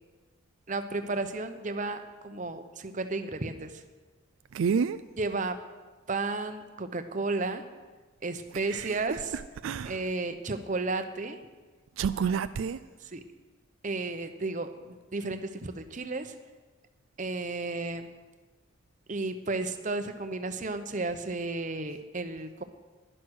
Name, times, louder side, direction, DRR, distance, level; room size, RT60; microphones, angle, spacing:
voice 1, 0.7-3.8 5.2-5.6 6.1-7.6 8.2-9.2 9.8-11.4 12.2-12.3 13.1-13.2 13.8-16.3 17.2-18.1 19.1-22.6, right 3 dB, 40° right, 0.8 m, -33 dB
voice 2, 4.5-5.0 8.5-10.0 12.0-12.8, right 6 dB, 80° right, 0.4 m, -30 dB
11.0 x 10.5 x 6.4 m
head